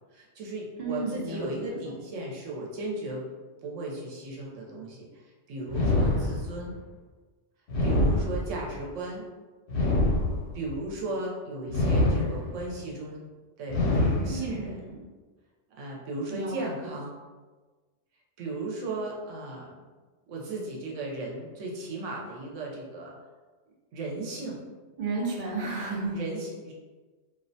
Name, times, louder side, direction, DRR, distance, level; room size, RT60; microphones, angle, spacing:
voice 1, 0.1-3.2 3.6-6.8 7.8-9.2 10.5-13.3 13.6-14.8 15.8-17.2 18.4-19.7 20.3-23.1 23.9-24.6 26.1-26.7, right 2 dB, 85° right, -3 dB, 1.0 m, -36 dB
voice 2, 0.8-1.7 14.3-15.0 16.3-16.9 25.0-26.2, right 3 dB, 60° right, -2 dB, 0.4 m, -33 dB
sound 1, 5.7-6.8 7.7-8.8 9.7-10.7 11.7-12.7 13.7-14.7, left 1 dB, 75° left, 1.0 m, -25 dB
2.4 x 2.1 x 2.6 m, 1.3 s
omnidirectional pair, 1.3 m